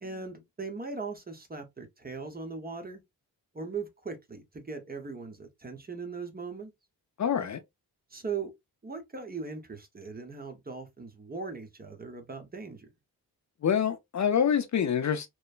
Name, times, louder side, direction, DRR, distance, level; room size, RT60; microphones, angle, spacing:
voice 1, 0.0-3.0 3.5-6.7 8.1-8.5 8.8-12.9, right 4 dB, 25° right, 0.9 m, -39 dB
voice 2, 7.2-7.6 13.6-15.3, left 8 dB, 45° left, 0.6 m, -26 dB
3.0 x 2.1 x 2.4 m
cardioid pair, 60°, 39 cm